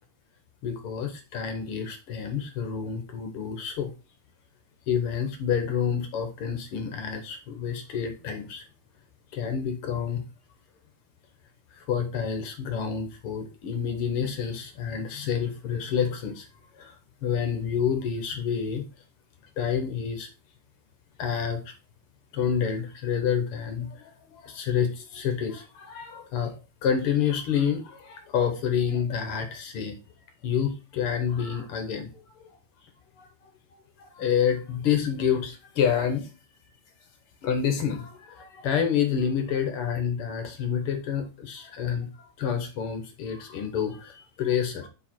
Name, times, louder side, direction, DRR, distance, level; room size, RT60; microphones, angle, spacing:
voice 1, 0.6-3.9 4.9-8.6 9.3-10.2 11.7-16.5 16.8-18.8 19.6-20.3 21.2-21.6 22.3-26.5 26.8-30.0 30.4-32.1 33.2-33.3 34.0-36.3 37.4-44.9, left 7 dB, 65° left, 6 dB, 1.5 m, -28 dB
5.9 x 4.8 x 4.3 m, 0.31 s
omnidirectional pair, 3.4 m